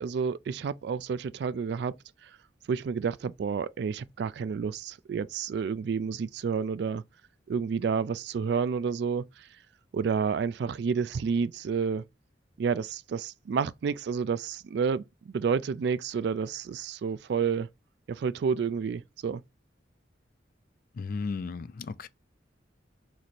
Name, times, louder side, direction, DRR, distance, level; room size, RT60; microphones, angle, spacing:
voice 1, 0.0-2.0 2.2-2.3 2.7-7.0 7.5-9.5 9.9-12.0 12.6-17.7 18.1-19.4, right 6 dB, 60° right, 0.3 m, -30 dB
voice 2, 21.0-22.1, left 4 dB, 50° left, 0.4 m, -34 dB
3.9 x 3.1 x 4.2 m
head